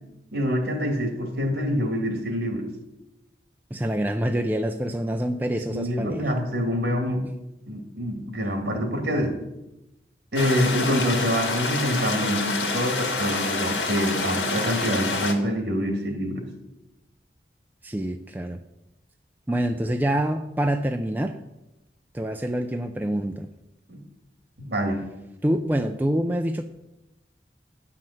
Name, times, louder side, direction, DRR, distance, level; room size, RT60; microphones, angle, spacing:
voice 1, 0.3-2.6 5.7-7.2 7.7-9.3 10.3-16.4 23.9-24.0 24.6-25.0, equal, 65° right, 3 dB, 2.7 m, -26 dB
voice 2, 3.7-6.3 17.8-18.6 19.5-21.3 22.1-23.5 25.4-26.6, right 1 dB, 10° right, 5 dB, 0.4 m, -26 dB
sound 1, 10.4-15.3, left 3 dB, 85° left, 1.7 m, -27 dB
10.5 x 5.8 x 7.7 m, 0.93 s
head